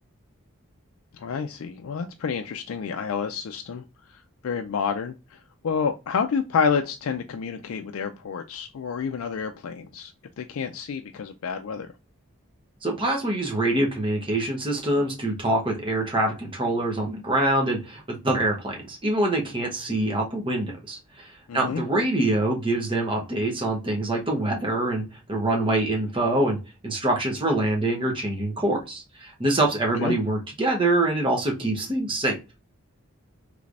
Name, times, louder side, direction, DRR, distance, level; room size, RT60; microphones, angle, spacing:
voice 1, 1.1-3.8 4.1-5.4 5.6-11.9 21.5-21.8 30.0-30.1, left 6 dB, 80° left, 5 dB, 0.4 m, -29 dB
voice 2, 12.8-25.0 25.3-26.6 26.8-32.4, right 1 dB, 25° right, 0 dB, 0.9 m, -25 dB
3.3 x 3.2 x 2.5 m, 0.28 s
head